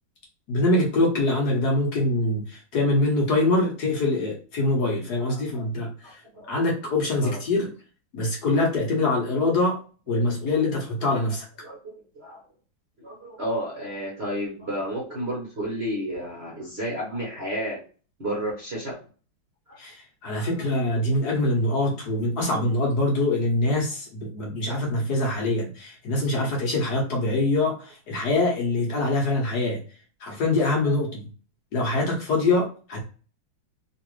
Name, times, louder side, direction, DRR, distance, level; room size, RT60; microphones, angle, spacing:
voice 1, 0.5-6.2 6.5-7.7 8.1-9.8 10.1-11.5 19.8-29.8 30.2-31.2 31.7-33.0, left 2 dB, 55° left, -1 dB, 1.3 m, -24 dB
voice 2, 5.1-5.7 6.0-6.7 7.2-7.4 8.5-8.6 9.2-9.3 10.1-10.2 11.6-12.4 13.0-17.8 18.2-19.0 19.7-19.8 20.3-21.0 24.7-24.8, equal, 40° right, -4 dB, 1.0 m, -32 dB
3.3 x 3.0 x 3.0 m, 0.38 s
omnidirectional pair, 2.2 m